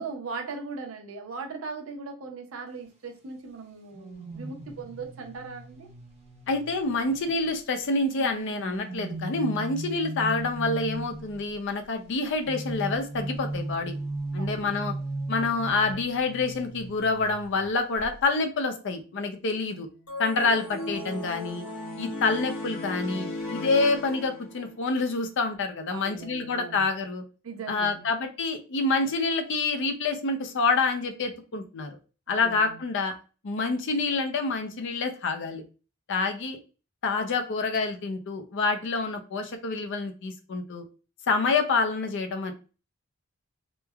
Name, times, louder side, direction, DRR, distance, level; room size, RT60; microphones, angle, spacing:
voice 1, 0.0-5.9 14.4-14.8 25.9-26.9 27.4-28.1 32.3-32.8, right 4 dB, 75° right, 0.6 m, -39 dB
sound 1, 3.9-7.6 8.2-11.4 12.5-17.7 18.0-18.2, right 1 dB, 35° right, 0.6 m, -37 dB
voice 2, 6.5-13.9 14.3-14.9 15.3-19.9 20.2-21.6 22.0-27.2 27.7-32.0 32.3-33.1 33.4-35.6 36.1-36.6 37.0-40.8 41.3-42.5, left 3 dB, 60° left, 0.5 m, -27 dB
sound 2, 20.1-24.7, left 2 dB, 80° left, 1.0 m, -36 dB
3.0 x 2.1 x 2.3 m
head